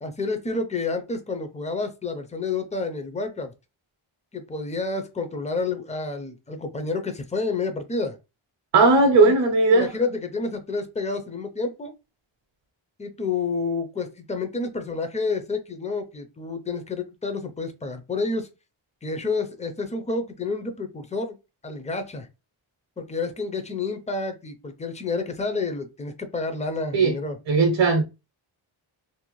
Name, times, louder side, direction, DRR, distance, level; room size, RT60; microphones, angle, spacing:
voice 1, 0.0-3.5 4.3-8.2 9.2-9.3 9.7-11.9 13.0-18.5 19.0-21.4 21.6-22.3 23.0-27.4 27.9-28.0, left 3 dB, 15° left, 0.4 m, -29 dB
voice 2, 8.7-9.9 26.9-27.1 27.5-28.0, right 3 dB, 60° right, 0.6 m, -17 dB
2.6 x 2.1 x 2.9 m
wide cardioid pair, 120°, 50 cm